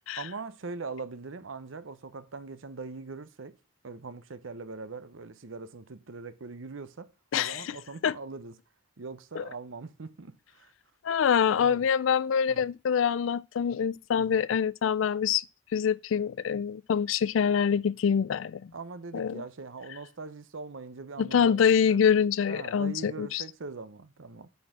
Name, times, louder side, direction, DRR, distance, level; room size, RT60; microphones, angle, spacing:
voice 1, 0.2-3.6 3.8-8.6 9.0-10.7 11.6-11.9 12.5-12.6 14.2-14.4 18.7-22.0 22.5-24.5, right 4 dB, 85° right, 0.8 m, -41 dB
voice 2, 7.3-7.8 8.0-8.1 9.4-9.5 11.0-15.4 15.7-18.6 19.1-19.4 21.2-23.4, left 7 dB, 85° left, 0.4 m, -25 dB
8.5 x 4.4 x 5.9 m
head